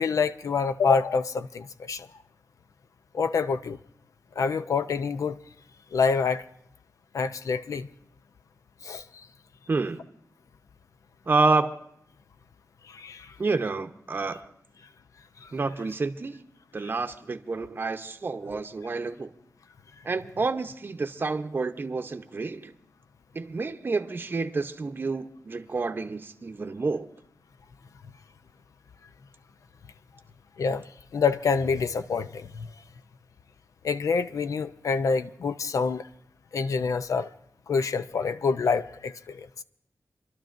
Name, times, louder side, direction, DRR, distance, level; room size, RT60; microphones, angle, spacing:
voice 1, 0.0-2.1 3.1-3.8 4.4-5.4 5.9-6.4 7.1-7.9 8.8-9.3 12.9-13.4 15.4-15.5 30.6-30.8 31.1-32.7 33.8-36.1 36.5-37.3 37.7-39.5, left 5 dB, 75° left, 0.5 m, -27 dB
voice 2, 9.7-10.0 11.3-11.8 13.4-14.5 15.5-16.4 16.7-19.3 20.0-22.7 23.3-27.1, right 3 dB, 40° right, 0.7 m, -29 dB
29.0 x 12.0 x 2.6 m
wide cardioid pair, 90°, 6 cm